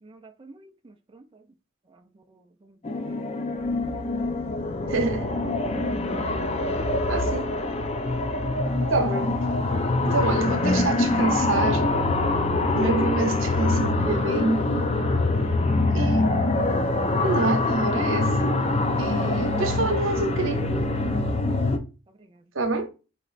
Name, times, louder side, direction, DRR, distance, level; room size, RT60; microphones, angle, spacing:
voice 1, 0.0-1.4 1.9-2.7 3.0-3.6 7.3-7.4 8.7-8.9 12.7-12.8 16.5-16.6 21.6-21.8 22.2-22.4, right 2 dB, 25° right, 0.4 m, -52 dB
sound 1, 2.8-21.8, left 2 dB, 30° left, 0.6 m, -24 dB
voice 2, 4.9-5.3 7.1-7.5 8.9-9.7 10.0-11.9 12.7-14.7 15.9-16.3 17.2-18.5 19.0-20.7 22.5-22.9, right 2 dB, 70° right, 0.9 m, -27 dB
4.2 x 3.0 x 4.0 m
head